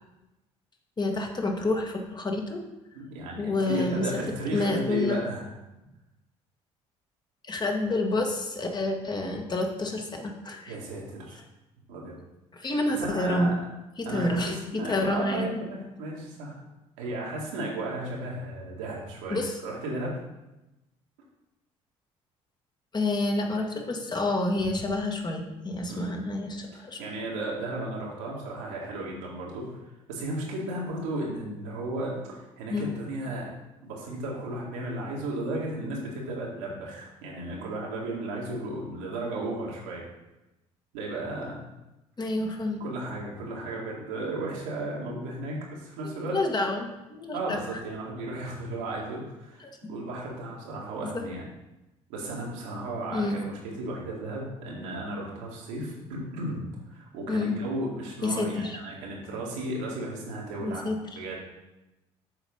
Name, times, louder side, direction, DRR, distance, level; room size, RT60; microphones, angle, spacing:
voice 1, 1.0-2.6 3.4-4.1 4.5-5.2 7.4-10.8 12.5-13.5 14.0-14.6 14.8-15.5 19.3-19.5 22.9-27.0 32.7-32.9 42.2-42.8 46.3-47.6 49.6-49.7 51.0-51.2 53.1-53.4 57.3-57.6 58.2-58.8 60.6-61.0, left 2 dB, 30° left, 3 dB, 1.5 m, -28 dB
voice 2, 2.9-5.4 10.7-11.4 11.9-12.2 12.6-13.5 14.1-16.6 17.0-20.1 25.9-26.1 26.7-29.8 30.1-33.5 33.8-40.0 40.9-41.6 42.8-46.4 47.3-51.5 52.1-56.6 56.9-61.4, right 2 dB, 85° right, -3 dB, 2.0 m, -34 dB
7.1 x 4.2 x 5.4 m, 0.98 s
hypercardioid pair, 65°, 15 cm